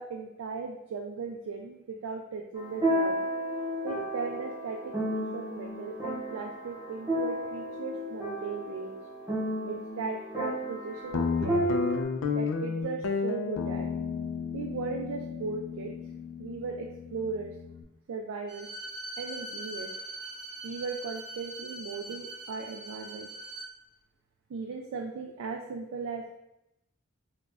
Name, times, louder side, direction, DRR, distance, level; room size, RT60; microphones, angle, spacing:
voice 1, 0.0-3.2 3.8-9.0 9.7-11.9 12.3-13.9 14.5-15.9 16.4-17.6 18.1-18.7 19.2-19.9 20.6-23.3 24.5-26.3, right 4 dB, 75° right, 2 dB, 0.3 m, -37 dB
sound 1, 2.6-12.0, equal, 10° right, 0.7 m, -32 dB
Guitar, 11.1-17.8, left 5 dB, 70° left, 0.3 m, -33 dB
Bowed string instrument, 18.5-23.7, right 1 dB, 20° left, 1.0 m, -42 dB
4.1 x 2.2 x 2.4 m, 0.85 s
head